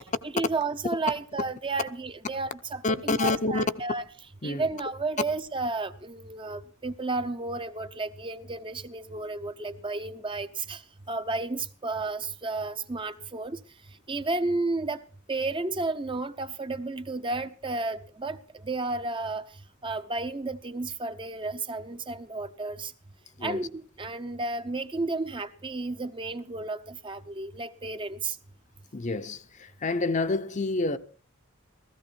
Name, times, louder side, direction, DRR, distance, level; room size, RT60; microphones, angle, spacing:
voice 1, 0.2-4.0 4.4-10.8 11.1-13.6 14.1-15.0 15.3-18.4 18.6-19.4 19.8-22.9 23.4-28.4, right 3 dB, 25° right, 0.7 m, -32 dB
voice 2, 2.8-3.6 4.4-4.6 23.4-23.7 28.9-31.0, left 3 dB, 35° left, 0.7 m, -28 dB
16.5 x 14.5 x 4.5 m
head